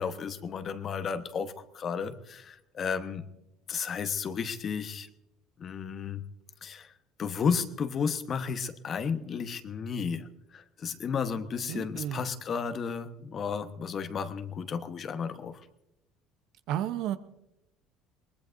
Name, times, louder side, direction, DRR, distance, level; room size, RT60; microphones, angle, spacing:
voice 1, 0.0-3.2 3.7-5.1 5.6-6.2 6.6-6.9 7.2-15.6, left 6 dB, 45° left, 10 dB, 1.1 m, -33 dB
voice 2, 11.7-12.2 16.7-17.2, right 11 dB, 70° right, 11 dB, 0.8 m, -32 dB
22.5 x 19.0 x 2.6 m, 0.91 s
supercardioid pair, 85°, 0 cm